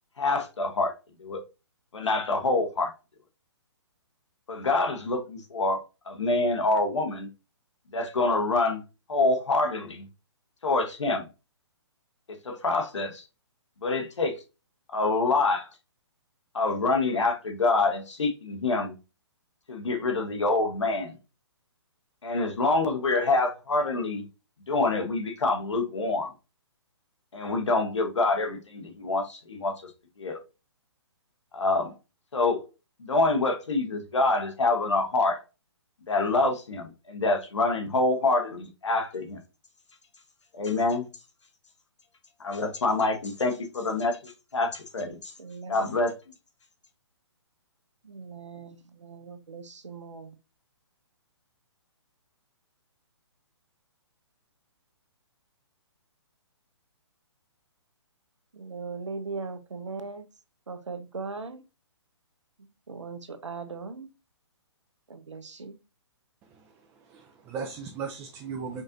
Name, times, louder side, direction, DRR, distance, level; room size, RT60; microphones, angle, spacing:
voice 1, 0.2-0.9 1.2-1.4 1.9-2.9 4.5-5.8 6.1-7.3 7.9-8.8 9.1-10.1 10.6-11.2 12.3-13.2 13.8-14.3 14.9-15.7 16.5-18.9 19.7-21.1 22.2-24.3 24.7-26.3 27.3-29.9 30.2-30.4 31.5-31.9 32.3-32.6 33.0-35.4 36.1-39.4 40.5-41.1 42.4-45.3 45.7-46.1, left 3 dB, 80° left, 1.1 m, -26 dB
voice 2, 45.4-46.0 48.0-50.4 58.5-60.3 60.7-61.6 62.6-64.1 65.1-65.8, right 4 dB, 85° right, 0.8 m, -39 dB
voice 3, 66.4-68.8, right 5 dB, 15° right, 0.3 m, -38 dB
5.1 x 2.5 x 2.6 m
hypercardioid pair, 135°, 15 cm